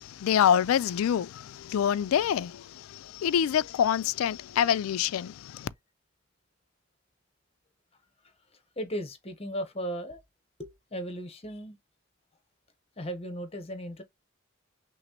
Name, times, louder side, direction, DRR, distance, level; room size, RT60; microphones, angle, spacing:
voice 1, 0.0-5.7, left 9 dB, 90° left, 0.3 m, -26 dB
voice 2, 8.8-10.2 10.6-11.8 13.0-14.0, equal, 30° left, 0.8 m, -36 dB
5.8 x 2.0 x 2.9 m
head